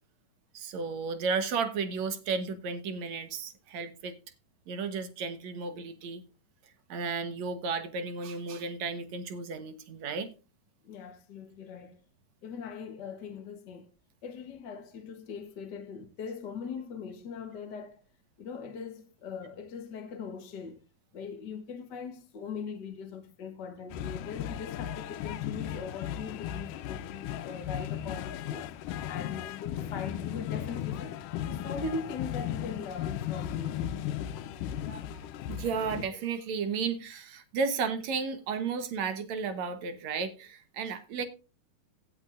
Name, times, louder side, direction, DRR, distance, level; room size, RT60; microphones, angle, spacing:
voice 1, 0.5-4.1 4.7-6.2 6.9-10.3 34.9-41.3, right 5 dB, 65° right, 2.3 m, -33 dB
voice 2, 10.8-12.0 12.4-13.9 14.2-18.0 18.4-20.8 21.1-28.7 29.1-31.2 31.5-34.0, left 5 dB, 50° left, 1.3 m, -40 dB
sound 1, 23.9-36.1, left 10 dB, 90° left, 2.3 m, -36 dB
17.0 x 8.9 x 2.5 m
omnidirectional pair, 3.7 m